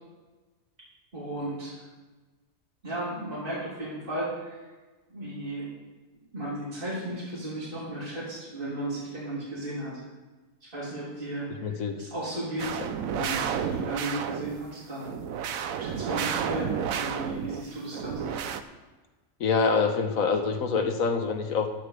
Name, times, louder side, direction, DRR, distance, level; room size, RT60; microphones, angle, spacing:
voice 1, 1.1-1.8 2.8-4.6 5.1-5.7 6.3-10.1 10.6-12.8 13.0-15.1 15.8-18.3, right 1 dB, 40° right, -7 dB, 3.6 m, -35 dB
voice 2, 11.6-12.0 19.4-21.7, left 5 dB, 85° left, 6 dB, 1.6 m, -25 dB
sound 1, 12.6-14.6 15.0-17.6 17.9-18.6, right 8 dB, 85° right, 1.1 m, -31 dB
14.0 x 11.5 x 3.4 m, 1.2 s
omnidirectional pair, 1.4 m